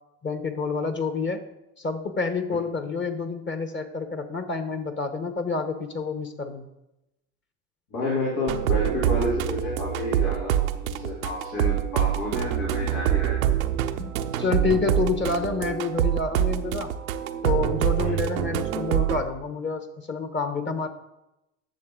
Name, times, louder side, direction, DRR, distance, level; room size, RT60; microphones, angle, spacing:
voice 1, 0.2-1.5 1.8-6.7 14.0-14.1 14.4-16.9 17.4-20.9, left 4 dB, 30° left, 8 dB, 1.2 m, -28 dB
voice 2, 7.9-13.6 18.0-18.1, left 1 dB, 85° left, -6 dB, 3.1 m, -30 dB
sound 1, 8.5-19.2, right 11 dB, 90° right, 0.8 m, -25 dB
10.5 x 6.7 x 3.8 m, 0.91 s
hypercardioid pair, 90°, 40 cm